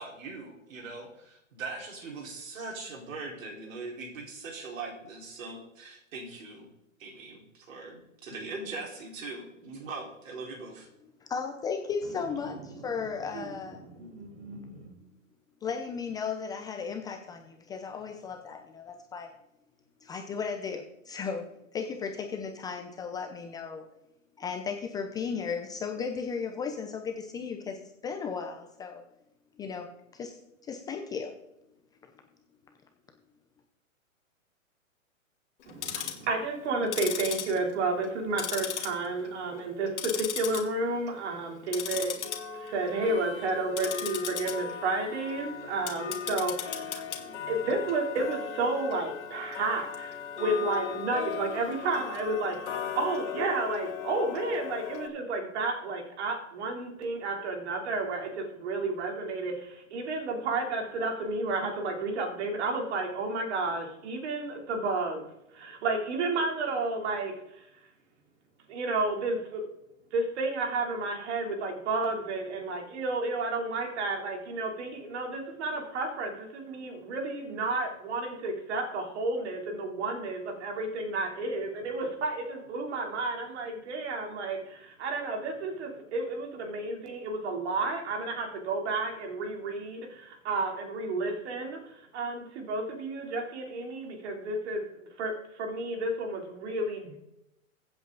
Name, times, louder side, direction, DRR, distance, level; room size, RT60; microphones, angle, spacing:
voice 1, 0.0-6.7 7.0-10.9, right 3 dB, 70° right, 0 dB, 4.6 m, -41 dB
voice 2, 11.2-13.8 15.6-19.3 20.0-21.4 21.7-23.9 24.4-29.0 29.6-29.9 30.1-31.3, left 5 dB, 10° left, 4 dB, 0.5 m, -35 dB
voice 3, 13.8-15.0 35.7-42.1 42.6-65.2 65.5-67.6 68.7-69.6 70.1-94.8 95.2-97.2, right 3 dB, 55° right, 2 dB, 3.5 m, -32 dB
Tick-tock, 35.6-36.3 36.8-38.1 38.4-39.3 39.6-40.6 41.0-41.2 41.7-55.1, left 8 dB, 55° left, 2.5 m, -37 dB
15.5 x 8.1 x 4.0 m, 0.87 s
hypercardioid pair, 140°, 40 cm